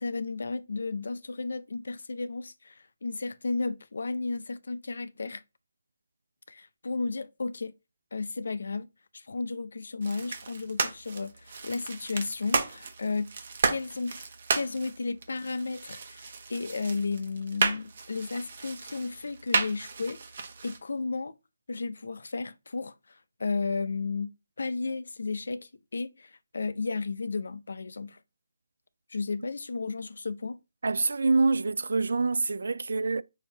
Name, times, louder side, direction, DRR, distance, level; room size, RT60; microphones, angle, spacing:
voice 1, 0.0-5.4 6.5-7.7 8.1-8.9 9.1-13.3 13.7-14.2 14.5-21.3 21.7-28.2 29.1-30.6, left 4 dB, 65° left, 0.4 m, -33 dB
sound 1, 10.0-20.8, right 4 dB, 45° right, 0.9 m, -33 dB
voice 2, 30.8-33.2, right 3 dB, 70° right, 0.3 m, -26 dB
6.4 x 2.8 x 2.8 m
hypercardioid pair, 170°, 0 cm